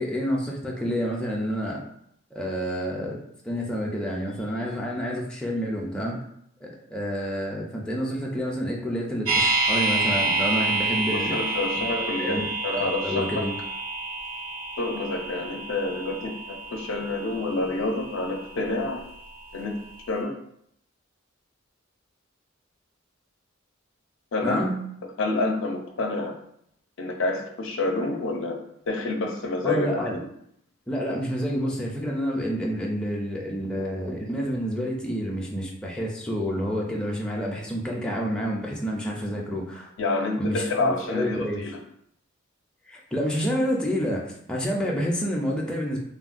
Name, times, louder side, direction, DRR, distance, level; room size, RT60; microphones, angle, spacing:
voice 1, 0.0-1.8 2.3-6.2 6.6-11.4 11.8-13.5 24.4-24.8 29.6-30.2 30.9-39.9 40.2-41.6 42.9-46.0, equal, 5° left, -3 dB, 0.4 m, -29 dB
sound 1, 9.2-19.3 19.6-19.7, right 3 dB, 85° right, 0.7 m, -28 dB
voice 2, 11.1-13.4 14.8-19.0 19.5-19.8 20.1-20.3 24.3-24.6 25.2-26.3 27.0-28.6 28.9-29.9 40.0-41.8, left 2 dB, 65° left, 3 dB, 0.5 m, -28 dB
3.4 x 2.2 x 2.4 m, 0.71 s
head